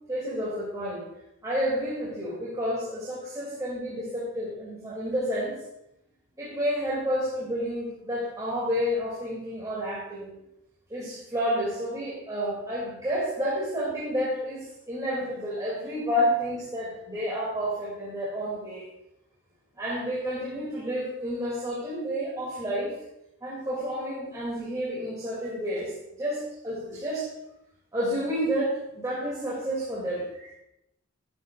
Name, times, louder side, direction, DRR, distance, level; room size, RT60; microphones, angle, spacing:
voice 1, 0.1-1.0 1.4-5.5 6.4-10.3 10.9-18.8 19.8-22.9 23.4-25.9 26.2-27.3 27.9-30.5, equal, 15° right, -7 dB, 2.8 m, -30 dB
12.0 x 11.0 x 2.5 m, 0.85 s
head